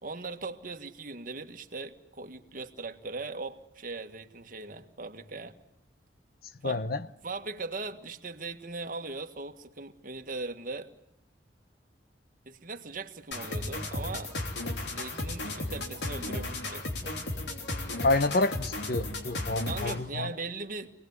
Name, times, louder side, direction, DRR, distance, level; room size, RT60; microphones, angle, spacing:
voice 1, 0.0-5.6 6.6-6.9 7.2-10.9 12.4-14.3 14.8-17.2 19.6-20.9, right 3 dB, 50° right, 1.7 m, -39 dB
voice 2, 6.6-7.1 18.0-20.3, left 2 dB, 60° left, 0.9 m, -28 dB
sound 1, 13.3-20.1, left 2 dB, 80° left, 3.2 m, -35 dB
26.5 x 19.5 x 9.6 m
head